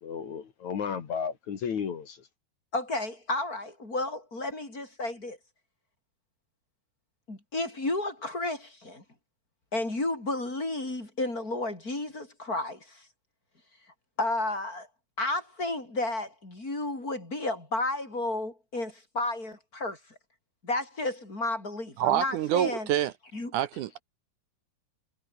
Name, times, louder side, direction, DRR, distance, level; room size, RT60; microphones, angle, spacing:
voice 1, 0.0-2.2, left 7 dB, 60° left, 3.6 m, -33 dB
voice 2, 2.7-5.4 7.3-9.0 9.7-13.0 14.2-14.9 15.2-20.0 20.6-22.9 23.3-23.5, left 2 dB, 25° left, 6.8 m, -32 dB
voice 3, 22.0-23.1 23.5-24.0, right 12 dB, 75° right, 2.3 m, -27 dB
omnidirectional pair, 3.8 m